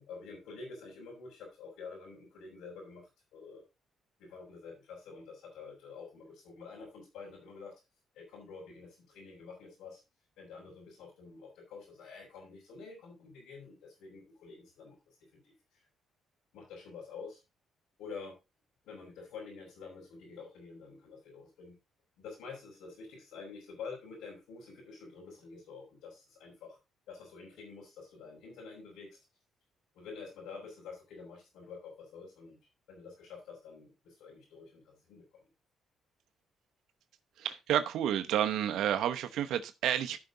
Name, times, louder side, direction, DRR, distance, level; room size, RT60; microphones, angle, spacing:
voice 1, 0.0-3.6 4.2-7.7 8.1-10.0 10.4-15.0 15.4-15.5 16.5-17.4 18.0-18.4 18.8-21.7 22.2-26.8 27.1-29.2 29.9-32.6 32.9-35.3, left 4 dB, 90° left, 5.2 m, -48 dB
voice 2, 37.4-40.2, right 10 dB, 80° right, 0.9 m, -30 dB
13.0 x 5.8 x 3.9 m
cardioid pair, 90°, 0 cm